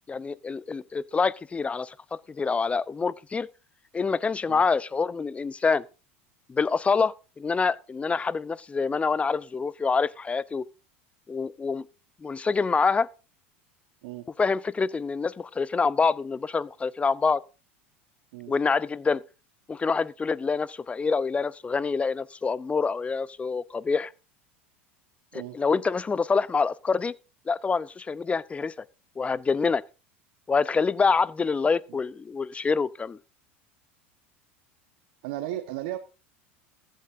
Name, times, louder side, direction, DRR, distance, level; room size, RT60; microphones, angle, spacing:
voice 1, 0.1-1.9 2.3-3.5 3.9-5.8 6.5-10.6 11.3-11.8 12.2-13.1 14.4-17.4 18.5-19.2 19.7-24.1 25.3-27.1 27.5-28.7 29.2-29.8 30.5-33.2, left 4 dB, 20° left, 0.6 m, -26 dB
voice 2, 35.2-36.0, right 14 dB, 65° right, 1.1 m, -35 dB
15.0 x 11.5 x 2.6 m
hypercardioid pair, 80°, 7 cm